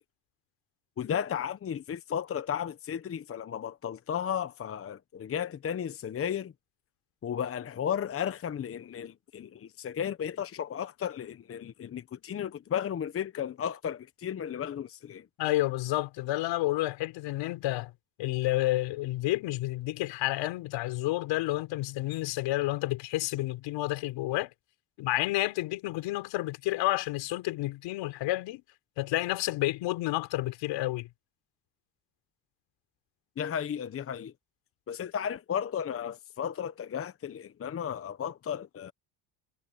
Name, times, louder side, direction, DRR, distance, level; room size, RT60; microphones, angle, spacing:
voice 1, 1.0-6.5 7.2-15.3 33.4-34.3 34.9-38.9, left 8 dB, 30° left, 1.0 m, -34 dB
voice 2, 15.4-17.9 18.2-24.5 25.0-28.6 29.0-31.1, left 17 dB, 70° left, 4.6 m, -30 dB
cardioid pair, 115°, 46 cm